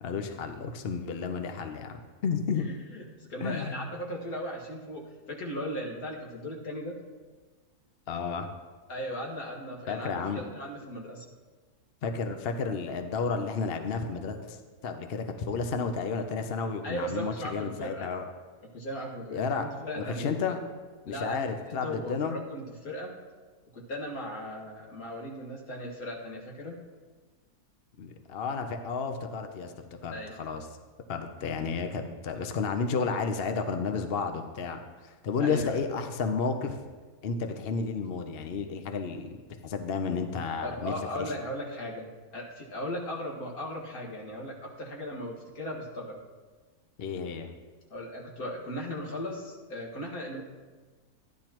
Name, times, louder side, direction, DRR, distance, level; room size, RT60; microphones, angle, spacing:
voice 1, 0.0-2.7 3.4-3.8 8.1-8.5 9.9-10.4 12.0-14.6 14.8-18.3 19.3-19.7 20.0-20.6 21.1-22.4 28.0-29.7 30.0-30.7 31.1-36.8 37.2-41.3 47.0-47.5, left 5 dB, 50° left, 6 dB, 0.7 m, -32 dB
voice 2, 2.5-7.0 8.9-11.2 16.8-18.2 18.7-20.3 21.1-21.5 21.8-23.1 23.7-26.8 30.1-30.4 35.4-35.8 40.6-46.2 47.9-50.4, equal, 70° left, -2 dB, 2.3 m, -37 dB
13.5 x 10.5 x 3.0 m, 1.4 s
omnidirectional pair, 1.6 m